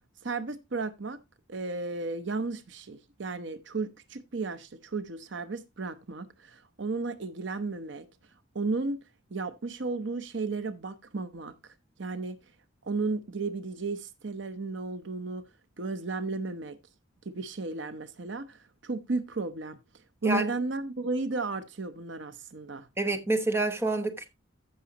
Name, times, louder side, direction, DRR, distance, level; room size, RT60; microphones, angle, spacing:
voice 1, 0.2-1.2 1.5-8.1 8.5-9.0 9.3-12.4 12.8-15.5 15.8-16.8 17.2-19.8 20.2-22.9, right 3 dB, 60° right, 0.8 m, -34 dB
voice 2, 23.0-24.3, right 2 dB, 10° right, 1.1 m, -28 dB
14.5 x 6.2 x 2.9 m
head